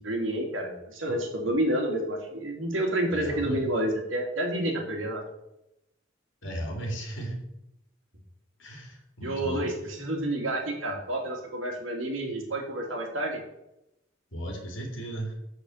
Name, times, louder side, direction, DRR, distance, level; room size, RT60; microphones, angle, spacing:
voice 1, 0.0-5.2 9.2-13.4, right 1 dB, 90° right, 1 dB, 2.6 m, -29 dB
voice 2, 3.1-3.6 6.4-7.4 8.6-9.7 14.3-15.3, right 1 dB, 65° left, 2 dB, 2.8 m, -35 dB
7.1 x 6.5 x 7.2 m, 0.86 s
head